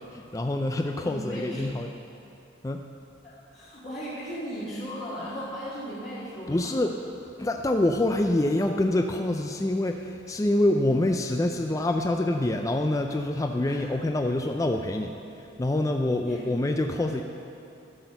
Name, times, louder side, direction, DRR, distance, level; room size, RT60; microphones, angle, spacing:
voice 1, 0.1-1.9 2.6-2.8 6.5-7.0 7.4-17.2, left 1 dB, 15° left, 4 dB, 0.3 m, -26 dB
voice 2, 1.0-1.8 3.2-6.7 13.7-13.9 16.2-16.7, equal, 35° left, -10 dB, 1.7 m, -37 dB
12.5 x 6.2 x 6.8 m, 2.7 s
head